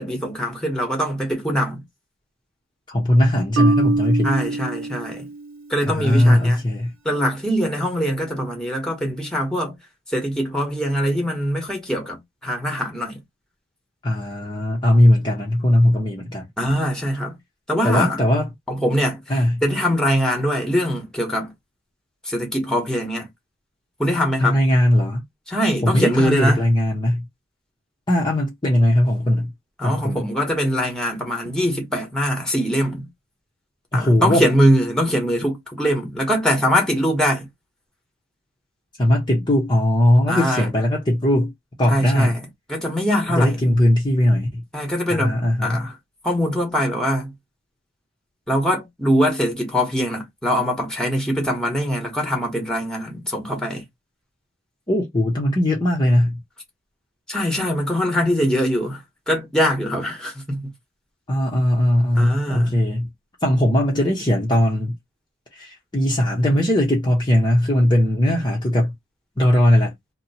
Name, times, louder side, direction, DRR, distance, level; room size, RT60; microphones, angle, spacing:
voice 1, 0.0-1.8 4.2-5.3 5.7-6.6 7.0-9.7 10.1-13.2 16.6-17.3 17.7-18.2 18.7-21.5 22.2-23.3 24.0-24.6 25.5-26.6 29.8-33.1 33.9-37.5 40.3-40.7 41.9-43.7 44.7-46.0 46.2-47.3 48.5-53.8 57.3-60.7 62.2-62.8, equal, 5° left, 1.1 m, -22 dB
voice 2, 2.9-4.3 5.8-6.9 14.0-16.4 17.8-18.5 19.3-19.6 24.4-25.2 25.8-27.2 28.1-29.5 29.8-30.3 33.9-34.4 39.0-41.5 41.8-42.4 43.3-44.6 45.1-45.8 54.9-56.4 61.3-63.1 63.4-65.0 65.5-68.9 69.4-69.9, left 1 dB, 20° left, 0.8 m, -19 dB
Marimba xylophone, 3.6-5.6, right 3 dB, 80° right, 0.7 m, -23 dB
2.9 x 2.2 x 4.1 m
head